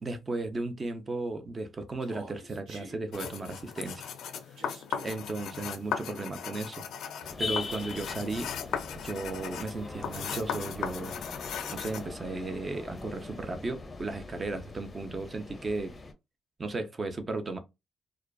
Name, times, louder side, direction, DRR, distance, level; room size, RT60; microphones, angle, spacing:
voice 1, 0.0-4.1 5.0-6.8 7.4-8.5 9.0-11.2 11.7-15.9 16.6-17.6, right 3 dB, 30° right, 0.5 m, -35 dB
Human voice, 2.0-3.0 4.6-5.2, right 2 dB, 85° right, 1.1 m, -46 dB
sound 1, 3.1-12.1, left 8 dB, 75° left, 0.3 m, -37 dB
sound 2, 7.2-16.1, left 3 dB, 25° left, 0.5 m, -41 dB
2.4 x 2.3 x 2.2 m
cardioid pair, 90°, 0 cm